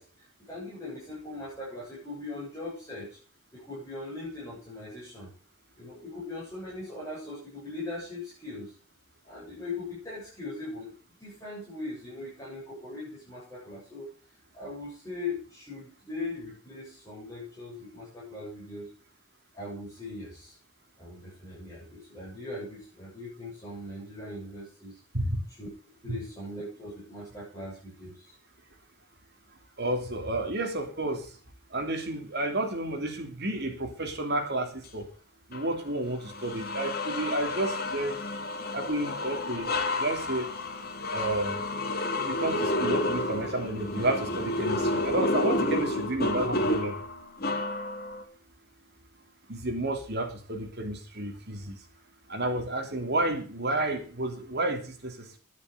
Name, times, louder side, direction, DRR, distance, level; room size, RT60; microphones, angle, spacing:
voice 1, 0.0-3.2 3.5-5.3 5.8-8.7 9.2-10.9 11.2-14.1 14.5-18.9 19.5-20.5 21.0-25.0 25.6-25.7 26.0-28.3, left 2 dB, 15° left, -7 dB, 7.6 m, -40 dB
voice 2, 29.8-31.3 31.7-35.0 35.5-38.2 38.7-39.7 40.0-40.5 41.1-41.6 42.2-47.1 49.5-51.8 52.3-55.4, right 1 dB, 50° right, 4 dB, 3.0 m, -31 dB
sound 1, 35.5-35.7 36.3-48.2, left 2 dB, 45° left, 2.3 m, -30 dB
11.0 x 9.6 x 8.0 m, 0.39 s
head